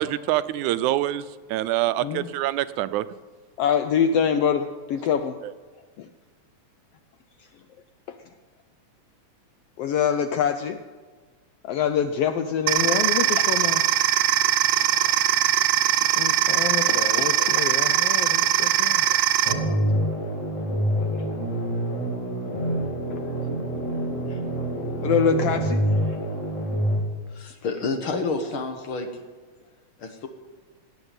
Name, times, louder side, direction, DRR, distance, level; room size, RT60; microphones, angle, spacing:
voice 1, 0.0-3.1 5.4-5.5, right 14 dB, 90° right, 15 dB, 2.1 m, -25 dB
voice 2, 3.6-5.4 6.0-6.1 8.1-8.2 9.8-10.8 11.6-13.8 14.8-15.2 16.2-19.2 19.5-20.1 20.7-21.4 23.1-23.3 23.7-24.0 24.3-24.4 25.0-26.2, left 7 dB, 75° left, 8 dB, 1.4 m, -26 dB
sound 1, 12.7-19.5, right 12 dB, 70° right, 1.9 m, -21 dB
sound 2, 19.5-27.0, right 1 dB, 25° left, 2.6 m, -26 dB
voice 3, 27.3-29.2 30.0-30.3, left 3 dB, 55° left, 6 dB, 1.7 m, -29 dB
18.0 x 8.1 x 8.9 m, 1.4 s
omnidirectional pair, 3.4 m